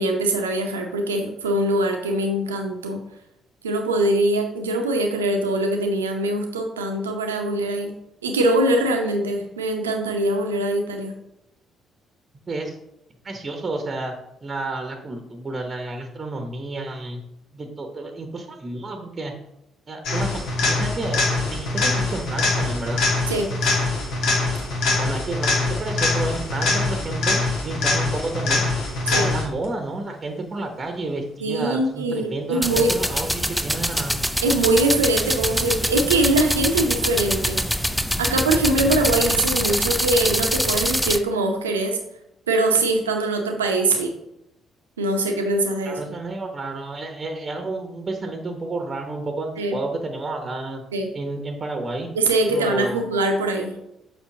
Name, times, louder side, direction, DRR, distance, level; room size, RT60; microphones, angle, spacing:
voice 1, 0.0-3.0 3.6-7.9 8.2-11.1 23.3-23.5 29.1-29.3 31.4-32.9 34.4-37.6 38.2-42.0 42.5-44.1 45.0-46.0 49.6-49.8 50.9-51.1 52.1-53.8, right 2 dB, 80° right, 4 dB, 0.7 m, -22 dB
voice 2, 13.2-14.1 14.4-17.2 17.5-19.3 19.9-23.1 25.0-28.7 29.1-34.2 45.8-50.8 51.1-52.1 52.5-53.0, right 2 dB, 30° right, 4 dB, 1.0 m, -31 dB
sound 1, 20.0-29.7 37.6-37.7, left 3 dB, 60° left, 1.6 m, -23 dB
sound 2, 32.6-41.2, equal, ahead, 0.5 m, -24 dB
7.0 x 5.8 x 2.9 m, 0.84 s
figure-of-eight pair, 45°, 0 cm